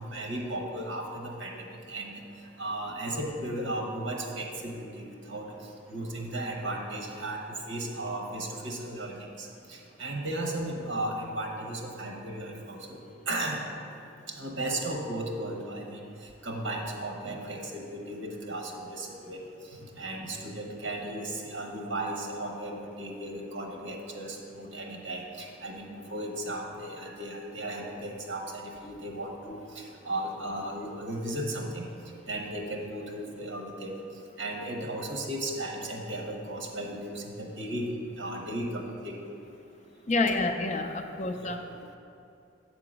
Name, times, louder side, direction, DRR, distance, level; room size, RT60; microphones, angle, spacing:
voice 1, 0.0-2.2 2.6-5.6 5.9-7.4 7.7-13.0 13.3-13.6 14.3-16.0 16.4-19.4 20.0-31.9 32.3-33.9 34.4-37.8 38.2-39.2 41.4-41.5, right 1 dB, 70° right, 1 dB, 1.0 m, -35 dB
voice 2, 40.1-41.6, left 2 dB, 35° left, 4 dB, 0.4 m, -28 dB
7.7 x 3.8 x 6.1 m, 2.6 s
head